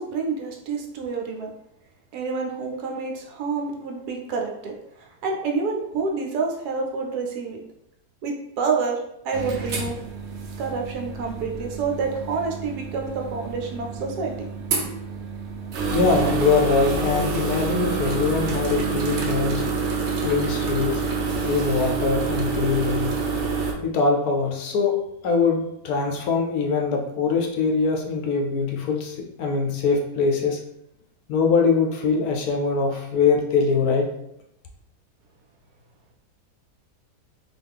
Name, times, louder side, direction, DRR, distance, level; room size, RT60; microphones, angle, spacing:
voice 1, 0.0-1.5 2.1-4.8 5.2-7.6 8.2-10.0 10.6-14.5, right 4 dB, 75° right, 1 dB, 1.2 m, -28 dB
sound 1, 9.3-23.7, right 4 dB, 60° right, 0.8 m, -27 dB
voice 2, 15.9-19.6 20.2-21.0 21.4-23.2 23.8-24.9 25.2-30.6 31.3-34.1, left 4 dB, 70° left, 2 dB, 1.0 m, -22 dB
3.9 x 2.3 x 3.5 m, 0.79 s
omnidirectional pair, 1.7 m